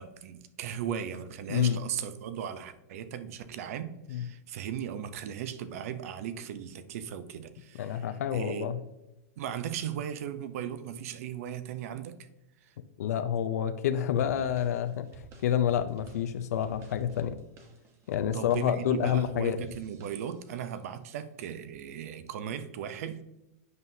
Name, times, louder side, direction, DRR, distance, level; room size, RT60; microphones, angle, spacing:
voice 1, 0.0-8.0 8.3-8.7 9.4-12.2 12.6-12.7 18.3-23.2, right 9 dB, 65° right, 11 dB, 0.6 m, -37 dB
voice 2, 1.5-1.8 4.1-4.3 7.7-8.8 13.0-17.4 18.1-19.6, left 9 dB, 80° left, 9 dB, 0.5 m, -28 dB
sound 1, 14.2-20.6, right 3 dB, 30° right, 1.0 m, -52 dB
8.0 x 5.5 x 2.7 m, 0.92 s
hypercardioid pair, 135°, 8 cm